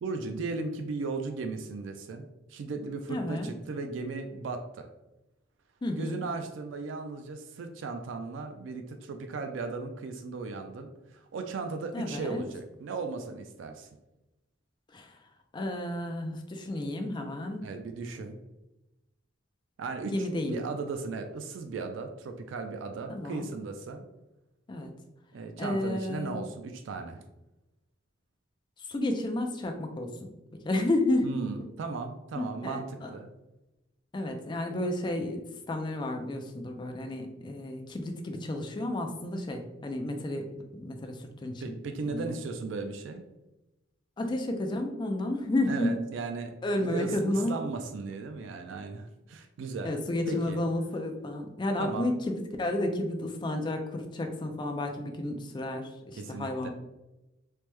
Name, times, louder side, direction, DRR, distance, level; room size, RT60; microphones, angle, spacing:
voice 1, 0.0-4.9 5.9-13.9 17.6-18.4 19.8-24.0 25.3-27.2 31.2-33.3 41.6-43.2 45.7-50.0 50.3-50.6 51.8-52.1 56.2-56.7, right 4 dB, 70° right, 6 dB, 0.3 m, -36 dB
voice 2, 3.1-3.5 5.8-6.2 11.9-12.4 14.9-15.2 15.5-17.6 20.1-20.6 23.1-23.5 24.7-24.9 25.6-26.4 28.8-30.3 30.6-31.3 32.4-33.1 34.1-35.4 35.7-41.6 42.0-42.4 44.2-45.9 46.6-47.5 49.8-56.7, left 1 dB, 25° left, 4 dB, 0.3 m, -31 dB
3.2 x 2.1 x 3.0 m, 0.97 s
head